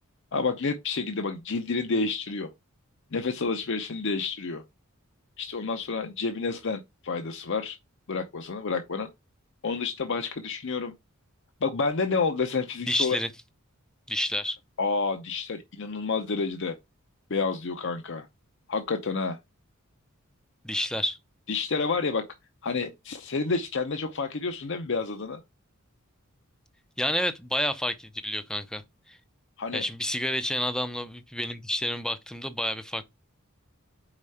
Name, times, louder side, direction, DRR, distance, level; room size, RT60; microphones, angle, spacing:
voice 1, 0.3-2.5 3.1-4.6 5.4-7.8 8.1-9.1 9.6-10.9 11.6-13.2 14.8-16.7 17.3-18.3 18.7-19.4 21.5-22.2 22.6-25.4 29.6-29.9, left 4 dB, 55° left, 0.7 m, -29 dB
voice 2, 12.9-13.3 14.1-14.6 20.6-21.2 27.0-28.8 29.1-29.2 29.7-33.0, left 1 dB, 5° left, 0.6 m, -29 dB
4.9 x 4.3 x 5.6 m
head